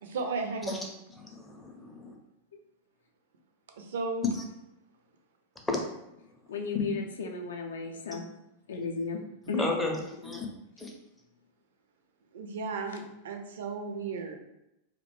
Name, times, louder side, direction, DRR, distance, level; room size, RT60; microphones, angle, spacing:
voice 1, 0.0-0.9 3.8-4.3 12.3-14.4, right 4 dB, 60° right, 4 dB, 0.4 m, -35 dB
voice 2, 0.7-2.2 4.3-4.4 5.7-5.8 6.7-7.1 9.4-10.5 10.8-10.9, left 2 dB, 10° left, 1 dB, 0.5 m, -33 dB
voice 3, 6.5-8.3 8.7-9.6, left 4 dB, 65° left, 2 dB, 0.4 m, -34 dB
2.4 x 2.1 x 3.0 m, 0.87 s
figure-of-eight pair, 90°, 0 cm